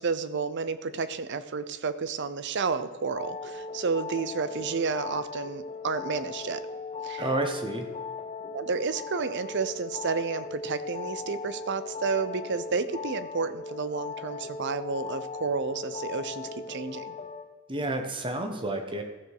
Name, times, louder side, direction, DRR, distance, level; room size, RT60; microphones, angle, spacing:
voice 1, 0.0-6.6 7.0-7.3 8.5-17.1, right 5 dB, 55° right, 13 dB, 0.6 m, -31 dB
sound 1, 3.1-17.4, left 4 dB, 30° left, 1.0 m, -38 dB
voice 2, 7.2-7.9 17.7-19.0, right 2 dB, 25° right, 5 dB, 1.2 m, -30 dB
14.5 x 6.8 x 4.8 m, 1.3 s
head